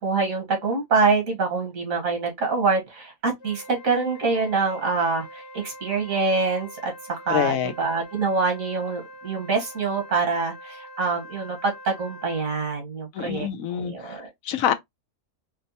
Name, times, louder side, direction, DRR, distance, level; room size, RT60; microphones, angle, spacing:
voice 1, 0.0-7.5 7.8-14.3, right 4 dB, 75° right, 1.8 m, -25 dB
Wind instrument woodwind instrument, 3.4-12.6, equal, 55° left, 1.0 m, -44 dB
voice 2, 7.3-7.7 13.1-14.7, left 9 dB, 80° left, 1.0 m, -26 dB
4.3 x 2.1 x 2.7 m
omnidirectional pair, 1.4 m